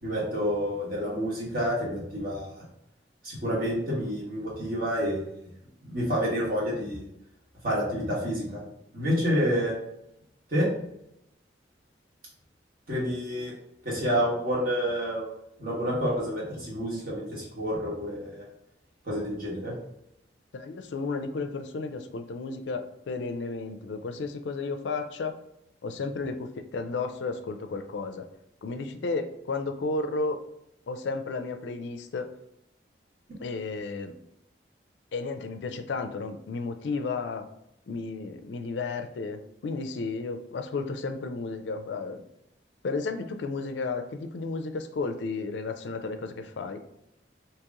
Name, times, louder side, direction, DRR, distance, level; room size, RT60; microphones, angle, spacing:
voice 1, 0.0-2.6 3.2-5.2 5.8-7.0 7.6-8.6 8.9-9.8 10.5-10.7 12.9-13.5 13.8-15.3 15.6-18.4 19.0-19.7, equal, 50° right, -5 dB, 1.4 m, -28 dB
voice 2, 20.5-25.4 25.8-28.3 28.6-30.4 30.9-32.3 33.4-34.1 35.1-37.5 37.9-42.2 42.8-46.8, left 3 dB, 80° left, 7 dB, 0.4 m, -33 dB
2.9 x 2.8 x 3.6 m, 0.80 s
head